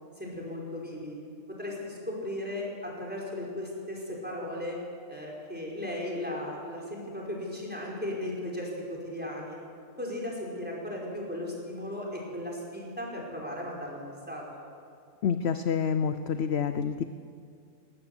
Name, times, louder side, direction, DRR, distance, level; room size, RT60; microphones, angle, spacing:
voice 1, 0.2-1.2 1.5-4.8 5.1-9.6 10.0-14.5, left 1 dB, 5° right, -3 dB, 5.1 m, -36 dB
voice 2, 15.2-17.0, left 7 dB, 60° left, 10 dB, 0.8 m, -28 dB
20.0 x 16.5 x 8.0 m, 2.4 s
omnidirectional pair, 1.4 m